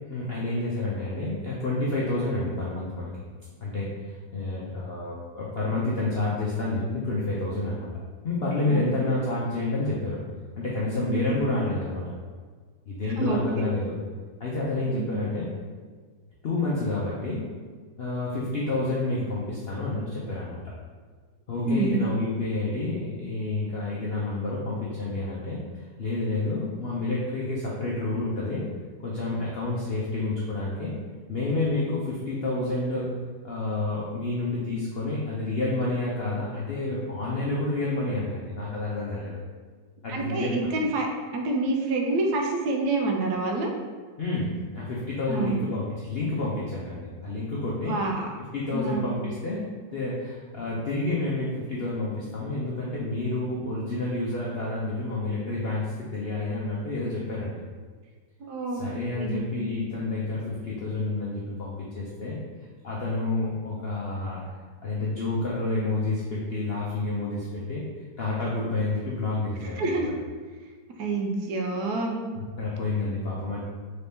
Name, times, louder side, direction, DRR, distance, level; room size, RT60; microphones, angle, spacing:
voice 1, 0.1-3.1 3.6-7.9 8.2-10.2 10.6-12.0 12.9-13.9 14.4-15.5 16.4-17.5 18.0-20.6 21.5-28.6 29.0-30.9 31.3-33.1 33.4-39.4 40.0-40.7 44.2-48.0 48.5-57.6 58.7-62.4 62.8-64.4 64.8-67.8 68.2-70.0 72.3-73.6, left 2 dB, 75° left, -6 dB, 0.5 m, -29 dB
voice 2, 8.7-9.1 11.1-11.5 13.2-13.7 14.9-15.1 21.6-22.0 40.1-41.1 41.3-43.7 45.3-45.6 47.8-48.3 48.7-49.1 58.4-58.8 59.1-59.4 69.6-70.1 71.0-72.1, right 3 dB, 70° right, 1 dB, 1.1 m, -28 dB
4.1 x 2.8 x 3.4 m, 1.5 s
omnidirectional pair, 1.9 m